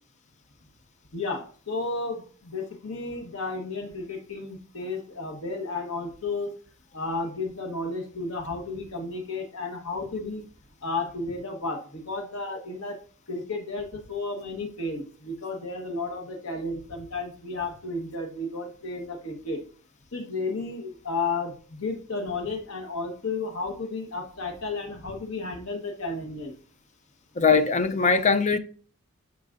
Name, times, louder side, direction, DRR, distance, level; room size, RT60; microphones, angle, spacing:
voice 1, 1.1-6.5 6.9-10.4 10.8-13.0 13.3-19.6 20.1-26.5, left 3 dB, 70° left, 1.3 m, -33 dB
voice 2, 27.4-28.6, left 5 dB, 35° left, 0.5 m, -21 dB
9.4 x 5.8 x 2.5 m
head